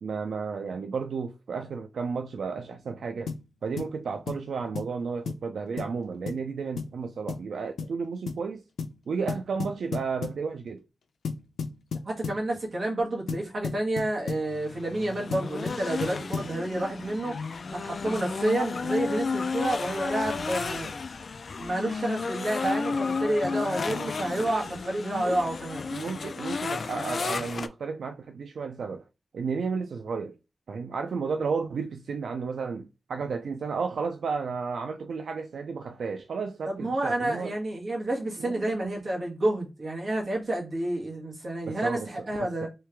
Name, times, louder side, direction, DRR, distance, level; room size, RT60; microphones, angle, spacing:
voice 1, 0.0-3.4 3.6-8.6 9.1-10.8 24.3-24.5 25.2-25.4 25.9-29.0 29.3-30.4 30.7-37.5 38.4-38.9 41.6-42.7, right 5 dB, 75° right, 0.3 m, -33 dB
sound 1, 3.3-3.5 3.8-3.9 4.3-4.5 4.7-4.9 5.3-5.5 5.8-5.9 6.3-6.4 6.8-7.0 7.3-7.5 7.8-8.0 8.3-8.4 8.8-9.0 9.3-10.4 11.2-12.4 13.3-14.5 15.3-16.6, left 5 dB, 90° left, 0.6 m, -34 dB
voice 2, 12.0-17.3 17.7-20.9 21.6-25.8 36.6-42.7, right 1 dB, 40° right, 1.5 m, -29 dB
sound 2, 14.5-27.7, left 4 dB, 50° left, 0.3 m, -32 dB
3.2 x 3.2 x 3.3 m
wide cardioid pair, 140°, 0 cm